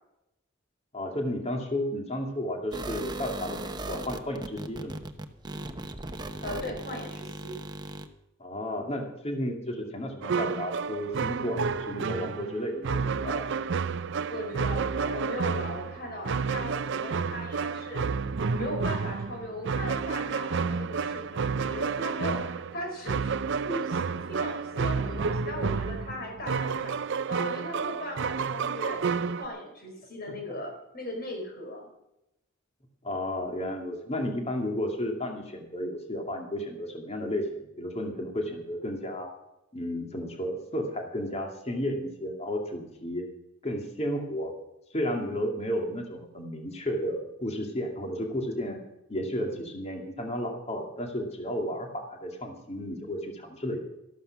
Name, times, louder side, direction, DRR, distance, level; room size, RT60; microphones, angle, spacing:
voice 1, 0.9-5.0 8.4-13.5 33.0-39.3 39.7-43.3 43.6-44.5 44.9-48.8 49.1-53.8, equal, 30° left, 3 dB, 2.4 m, -33 dB
sound 1, 2.7-8.1, right 2 dB, 20° right, 0.9 m, -37 dB
voice 2, 6.4-7.6 14.3-18.1 18.5-24.0 24.3-27.0 27.3-29.0 29.4-31.9, left 1 dB, 50° left, 2 dB, 4.7 m, -38 dB
sound 2, 10.2-29.5, right 5 dB, 65° right, 0.5 m, -30 dB
13.5 x 13.0 x 5.9 m, 0.88 s
head